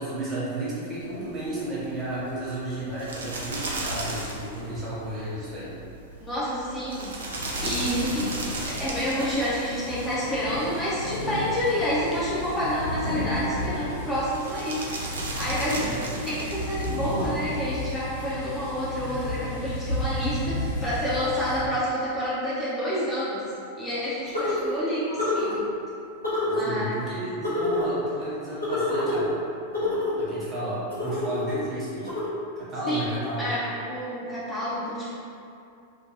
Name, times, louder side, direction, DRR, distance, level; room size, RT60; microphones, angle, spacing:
voice 1, 0.0-5.7 15.6-16.0 26.4-29.4 29.7-32.1 32.6-33.5, right 1 dB, 25° right, -9 dB, 1.0 m, -33 dB
sound 1, 0.9-17.9, right 2 dB, 70° right, 0.4 m, -37 dB
voice 2, 6.2-7.1 7.6-8.4 8.6-25.7 26.4-26.9 32.9-33.0 33.4-35.1, equal, 15° left, -10 dB, 0.7 m, -29 dB
sound 2, 7.3-21.6, equal, 60° left, 1.1 m, -33 dB
sound 3, 24.3-24.7 25.2-25.6 26.2-26.7 27.4-27.9 28.6-29.2 29.7-30.2 30.9-31.6 32.1-32.3, left 2 dB, 80° left, 0.7 m, -27 dB
2.6 x 2.2 x 3.1 m, 2.5 s
figure-of-eight pair, 90°, 0 cm